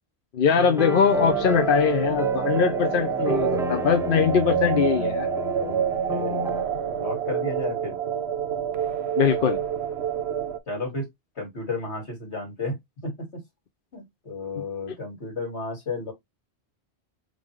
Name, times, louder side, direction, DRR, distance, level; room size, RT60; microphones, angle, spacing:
voice 1, 0.3-5.3 9.2-9.6, left 6 dB, 55° left, 0.8 m, -22 dB
sound 1, 0.6-6.6, right 1 dB, 5° right, 0.5 m, -31 dB
sound 2, 1.1-10.6, right 8 dB, 75° right, 1.0 m, -28 dB
voice 2, 6.1-6.4 6.7-8.0 10.7-11.1 11.4-12.8 13.0-13.4 13.9-16.1, left 3 dB, 80° left, 2.6 m, -33 dB
3.9 x 3.8 x 3.2 m
omnidirectional pair, 1.1 m